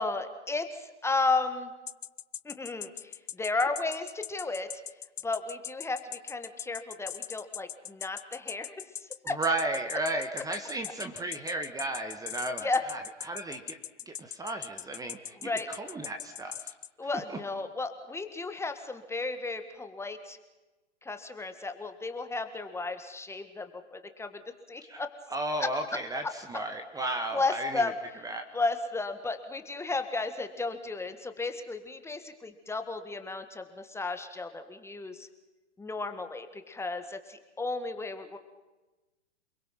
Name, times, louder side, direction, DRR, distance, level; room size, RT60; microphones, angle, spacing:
voice 1, 0.0-1.7 2.5-4.7 5.2-8.9 9.3-9.4 12.6-12.8 15.4-15.7 17.0-20.4 21.0-25.1 25.6-25.7 27.3-27.9 28.5-35.3 35.8-38.4, left 3 dB, 5° left, 8 dB, 1.7 m, -33 dB
sound 1, 1.9-16.9, left 9 dB, 75° left, 0.7 m, -40 dB
voice 2, 9.2-13.8 14.0-16.7 17.3-17.4 24.9-25.0 25.3-27.9 28.2-28.4, right 2 dB, 10° right, 6 dB, 1.5 m, -34 dB
28.5 x 21.5 x 5.9 m, 1.1 s
hypercardioid pair, 115°, 36 cm